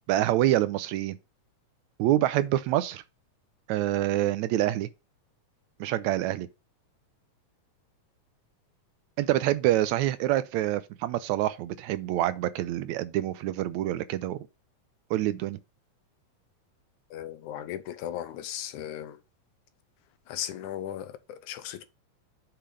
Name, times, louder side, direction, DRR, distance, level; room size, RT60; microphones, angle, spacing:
voice 1, 0.1-1.2 2.0-3.0 3.7-4.9 5.8-6.5 9.2-14.4 15.1-15.6, right 14 dB, 80° right, 1.8 m, -26 dB
voice 2, 17.1-19.2 20.3-21.8, left 11 dB, 85° left, 2.3 m, -37 dB
6.8 x 4.4 x 5.2 m
omnidirectional pair, 3.4 m